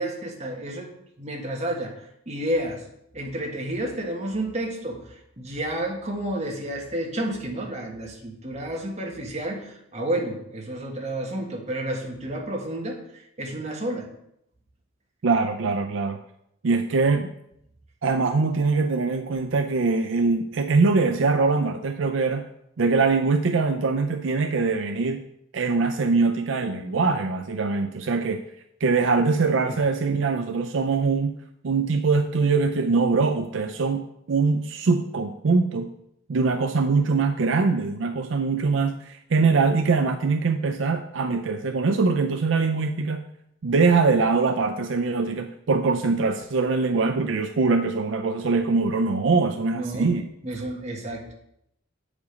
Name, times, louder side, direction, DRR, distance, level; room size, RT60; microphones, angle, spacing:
voice 1, 0.0-2.8 3.1-5.0 5.4-13.0 13.4-14.1 29.7-29.8 49.7-50.1 50.4-51.3, right 1 dB, 35° right, 0 dB, 1.5 m, -30 dB
voice 2, 15.2-16.2 16.6-17.3 18.0-22.5 22.8-25.2 25.5-28.4 28.8-31.4 31.6-35.9 36.3-43.2 43.6-50.2, right 4 dB, 70° right, 6 dB, 0.5 m, -23 dB
8.2 x 5.1 x 5.1 m, 0.77 s
head